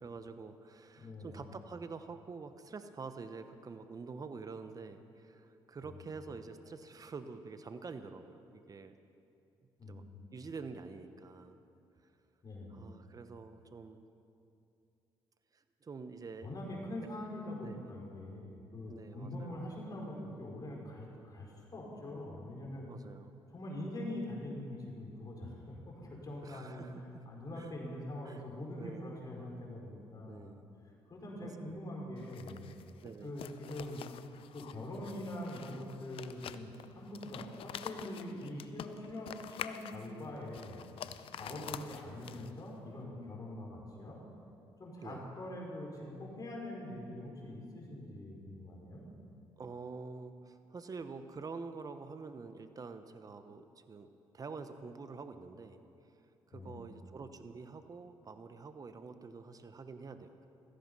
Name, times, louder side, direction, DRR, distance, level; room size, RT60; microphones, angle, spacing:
voice 1, 0.0-8.9 9.9-10.1 10.3-11.6 12.7-14.1 15.5-16.5 17.0-17.1 17.6-18.0 18.9-19.7 22.9-23.4 26.4-27.2 27.6-27.7 28.2-28.4 28.8-29.2 30.3-30.6 31.6-31.8 33.0-33.4 41.4-41.8 45.0-45.3 49.6-54.1 54.3-55.8 56.5-60.5, right 4 dB, 40° right, 9 dB, 1.1 m, -47 dB
voice 2, 1.0-1.4 5.8-6.0 9.8-10.1 12.4-12.9 16.4-22.9 23.5-26.8 27.2-30.5 31.1-32.7 33.2-34.0 34.5-40.9 41.4-44.2 44.8-49.1 56.5-57.0, left 1 dB, 40° left, -2 dB, 5.1 m, -43 dB
sound 1, 32.2-42.7, left 10 dB, 70° left, 0.6 m, -47 dB
17.0 x 14.5 x 5.6 m, 2.7 s
supercardioid pair, 65°, 10 cm